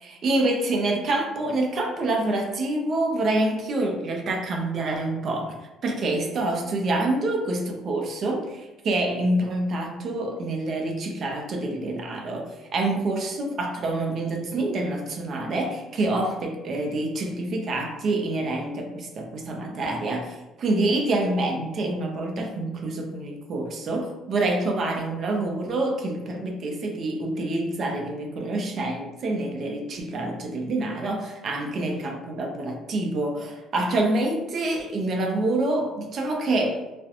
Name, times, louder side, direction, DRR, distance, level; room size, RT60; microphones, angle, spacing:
voice 1, 0.0-5.5 5.8-36.8, right 2 dB, 40° right, 1 dB, 0.4 m, -27 dB
2.4 x 2.1 x 2.7 m, 1.1 s
cardioid pair, 155°, 0 cm